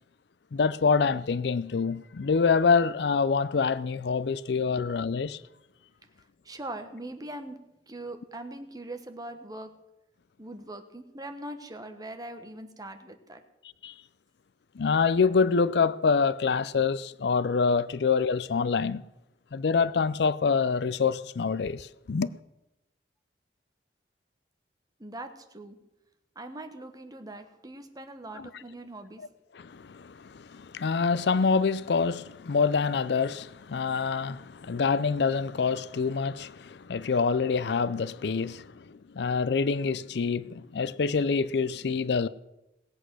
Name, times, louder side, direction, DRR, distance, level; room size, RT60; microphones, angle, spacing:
voice 1, 0.5-5.4 13.8-13.9 14.8-19.0 19.5-22.3 28.4-28.5 29.5-42.3, left 5 dB, 65° left, 0.5 m, -26 dB
voice 2, 6.4-7.6 7.9-9.7 10.4-13.4 25.0-25.8 26.3-29.2, right 1 dB, 20° right, 1.3 m, -41 dB
18.5 x 8.3 x 6.3 m
head